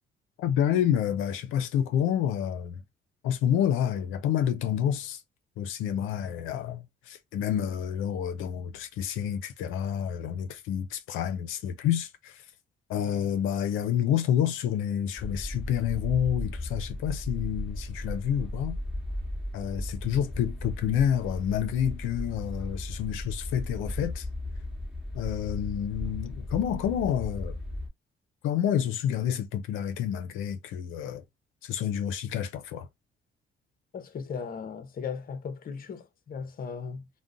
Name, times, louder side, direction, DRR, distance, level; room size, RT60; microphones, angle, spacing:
voice 1, 0.4-2.8 3.2-5.2 5.6-12.5 12.9-18.8 19.5-24.3 25.1-27.6 28.4-31.2 31.6-32.9, left 9 dB, 90° left, 0.5 m, -29 dB
sound 1, 15.2-27.9, left 1 dB, 5° right, 1.1 m, -36 dB
voice 2, 33.9-37.1, left 6 dB, 45° left, 0.7 m, -37 dB
2.5 x 2.1 x 3.7 m
cardioid pair, 90°, 20 cm